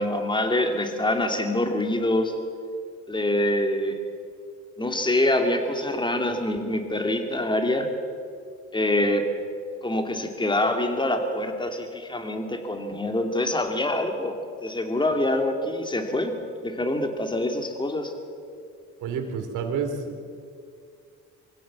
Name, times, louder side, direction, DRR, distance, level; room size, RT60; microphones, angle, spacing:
voice 1, 0.0-2.3 3.1-4.0 4.8-7.9 8.7-9.3 9.8-16.3 16.6-18.1, left 1 dB, 15° left, 5 dB, 2.7 m, -25 dB
voice 2, 19.0-20.2, right 6 dB, 85° right, 5 dB, 2.8 m, -29 dB
24.0 x 16.0 x 7.4 m, 2.3 s
cardioid pair, 90°, 30 cm